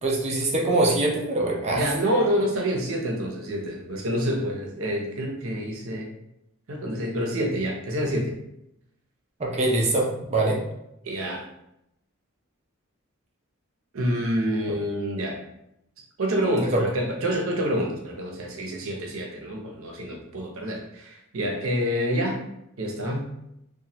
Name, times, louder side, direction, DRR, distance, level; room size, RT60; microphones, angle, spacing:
voice 1, 0.0-1.9 9.4-10.6 16.7-16.8, right 2 dB, 30° right, 0 dB, 0.5 m, -23 dB
voice 2, 1.7-6.1 6.7-8.3 11.0-11.5 13.9-15.4 16.2-22.4 22.8-23.3, equal, 70° right, 1 dB, 0.7 m, -27 dB
3.0 x 2.2 x 2.8 m, 0.82 s
head